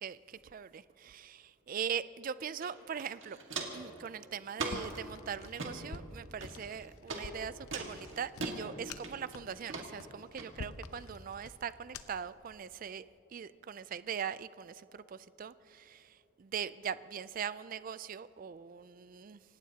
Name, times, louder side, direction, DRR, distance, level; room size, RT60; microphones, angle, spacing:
voice 1, 0.0-3.4 3.7-13.1 13.3-19.4, right 7 dB, 40° right, 16 dB, 0.3 m, -41 dB
Walk footsteps, 2.6-2.7 3.0-3.9 4.6-5.0 5.4-5.7 6.4-6.8 7.1-7.2 7.7-8.6 9.0-9.4 9.7-9.9 10.4-10.5, right 3 dB, 60° right, 1.8 m, -39 dB
sound 1, 4.7-12.3, left 3 dB, 90° left, 0.8 m, -49 dB
25.5 x 18.0 x 2.8 m, 2.8 s
head